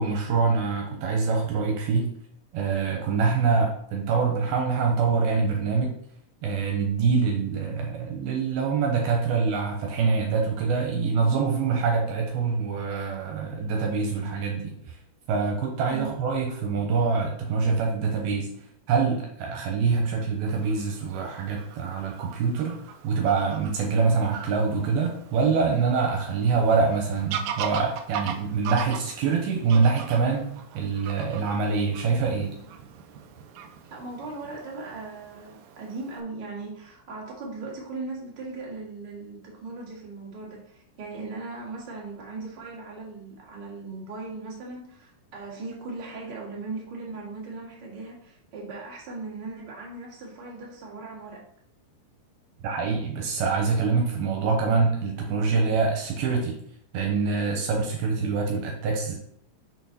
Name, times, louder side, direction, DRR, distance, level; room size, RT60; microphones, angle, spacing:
voice 1, 0.0-2.1 2.5-5.9 6.4-15.0 15.3-18.5 18.9-22.8 23.0-30.5 30.7-32.5 52.6-56.6 56.9-59.1, right 5 dB, 75° right, 1 dB, 2.7 m, -25 dB
Fowl / Bird vocalization bird call bird song, 20.5-36.2, right 8 dB, 90° right, 2.0 m, -40 dB
voice 2, 33.9-51.4, right 3 dB, 40° right, -4 dB, 1.5 m, -38 dB
6.4 x 4.6 x 4.0 m, 0.66 s
omnidirectional pair, 4.8 m